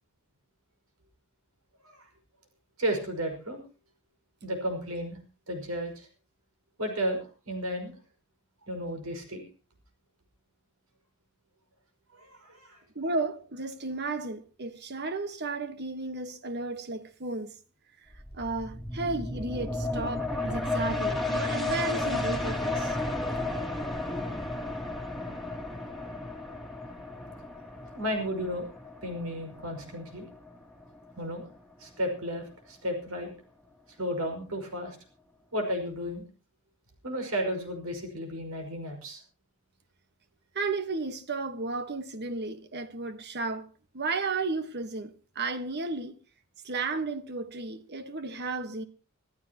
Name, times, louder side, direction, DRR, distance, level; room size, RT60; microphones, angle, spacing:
voice 1, 2.8-3.6 4.4-5.2 5.5-6.1 6.8-8.0 8.6-9.4 12.1-12.8 28.0-28.7 29.0-30.3 31.2-31.5 31.8-33.3 34.0-35.0 35.5-36.2 37.0-39.2, equal, 80° right, 5.5 m, -33 dB
voice 2, 12.9-17.5 18.3-23.0 40.5-43.7 43.9-46.2 46.6-48.8, right 3 dB, 50° right, 1.4 m, -33 dB
sound 1, 18.1-31.4 31.8-31.9, left 2 dB, ahead, 2.3 m, -33 dB
25.0 x 14.0 x 3.0 m
head